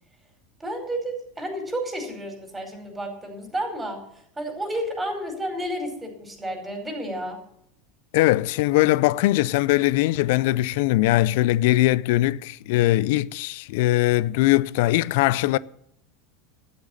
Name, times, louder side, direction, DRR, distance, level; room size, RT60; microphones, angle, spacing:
voice 1, 0.6-4.0 4.4-7.4, right 1 dB, 15° right, 5.0 m, -31 dB
voice 2, 8.1-15.6, left 17 dB, 65° left, 0.4 m, -21 dB
12.5 x 8.1 x 7.2 m
hypercardioid pair, 85°, 0 cm